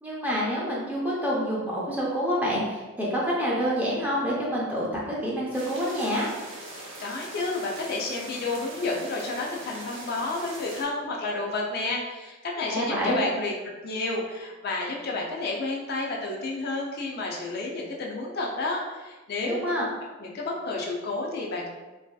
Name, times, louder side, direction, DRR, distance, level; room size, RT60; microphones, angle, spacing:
voice 1, 0.0-6.3 12.7-13.2 19.5-19.9, equal, 10° right, -6 dB, 0.6 m, -27 dB
sound 1, 5.5-10.8, right 1 dB, 65° right, 0.8 m, -42 dB
voice 2, 7.0-19.6 20.2-21.7, left 2 dB, 50° left, -2 dB, 0.4 m, -31 dB
3.1 x 2.6 x 2.2 m, 1.2 s
head